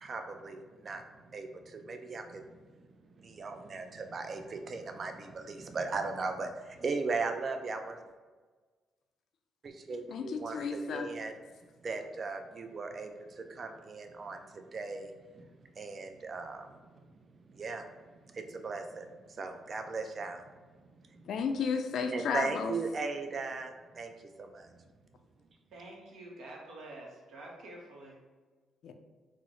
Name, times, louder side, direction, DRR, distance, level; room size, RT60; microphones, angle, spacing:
voice 1, 0.0-8.0 9.6-11.3 11.8-17.2 17.5-17.9 18.3-20.6 21.1-21.2 22.1-24.7, right 4 dB, 45° right, 6 dB, 0.3 m, -38 dB
voice 2, 10.1-11.1 21.3-22.7 28.8-28.9, left 5 dB, 70° left, 6 dB, 0.3 m, -33 dB
voice 3, 25.7-28.2, right 1 dB, 75° right, -1 dB, 0.8 m, -48 dB
3.7 x 2.0 x 2.9 m, 1.4 s
cardioid pair, 90°, 0 cm